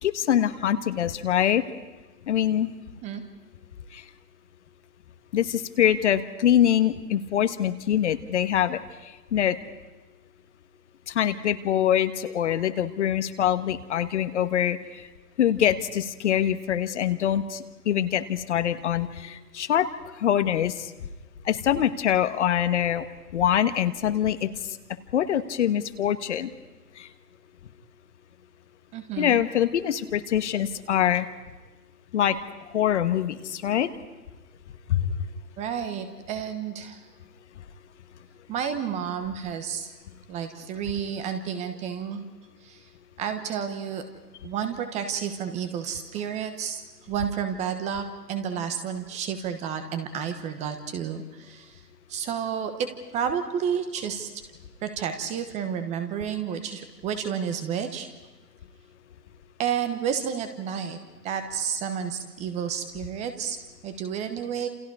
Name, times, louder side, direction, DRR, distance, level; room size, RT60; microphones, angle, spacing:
voice 1, 0.0-1.6 2.3-2.7 3.9-4.0 5.3-9.6 11.1-14.8 15.4-19.9 20.2-20.9 21.4-23.0 23.3-24.5 25.1-26.5 27.0-27.1 29.2-31.3 32.1-32.4 32.7-33.9 34.9-35.1, left 10 dB, 45° left, 11 dB, 1.4 m, -24 dB
voice 2, 28.9-29.4 35.6-37.0 38.5-39.9 40.3-42.2 42.6-42.9 43.2-44.0 44.4-51.8 52.1-54.3 54.8-58.1 59.6-61.0 61.2-63.6 63.8-64.7, right 8 dB, 15° right, 8 dB, 1.1 m, -31 dB
29.0 x 28.5 x 4.8 m, 1.2 s
figure-of-eight pair, 135°, 49 cm